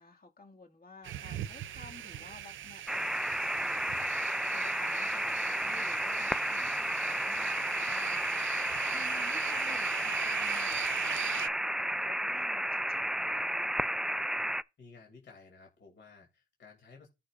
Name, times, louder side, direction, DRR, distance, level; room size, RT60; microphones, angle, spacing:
voice 1, 0.0-13.6, left 4 dB, 45° left, 2.1 m, -53 dB
sound 1, 1.0-11.5, right 11 dB, 75° right, 0.5 m, -40 dB
sound 2, 2.9-14.6, right 1 dB, 5° right, 0.3 m, -32 dB
voice 2, 14.8-17.1, left 4 dB, 65° left, 2.6 m, -55 dB
14.0 x 5.5 x 2.5 m
supercardioid pair, 50°, 20 cm